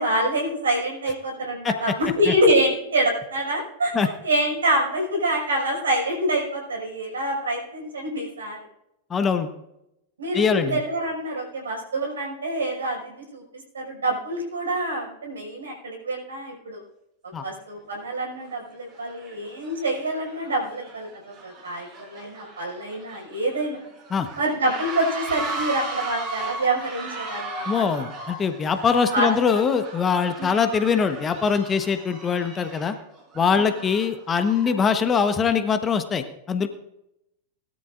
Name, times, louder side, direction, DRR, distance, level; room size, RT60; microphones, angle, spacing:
voice 1, 0.0-8.6 10.2-13.4 13.7-16.8 17.4-23.8 24.4-27.8 29.1-29.3 30.4-30.6 33.5-33.7, right 1 dB, 70° right, 0 dB, 5.8 m, -26 dB
voice 2, 9.1-9.5 10.3-10.8 17.3-17.4 24.1-24.3 27.7-33.0 33.3-36.7, left 6 dB, 20° left, 9 dB, 1.1 m, -22 dB
sound 1, 18.3-18.5 18.9-34.9, right 2 dB, 35° right, 5.9 m, -37 dB
20.5 x 13.0 x 2.5 m, 0.83 s
figure-of-eight pair, 90°, 0 cm